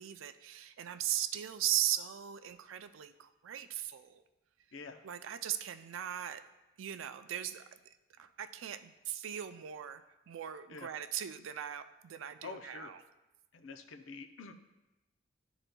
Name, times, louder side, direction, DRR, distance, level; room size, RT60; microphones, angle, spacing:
voice 1, 0.0-4.2 5.0-6.4 6.8-7.6 8.2-10.0 10.3-13.0, right 11 dB, 85° right, 9 dB, 0.4 m, -38 dB
voice 2, 4.7-5.1 10.7-10.9 12.4-12.9 13.5-14.5, left 4 dB, 75° left, 7 dB, 0.5 m, -47 dB
11.5 x 3.9 x 2.2 m, 1.0 s
head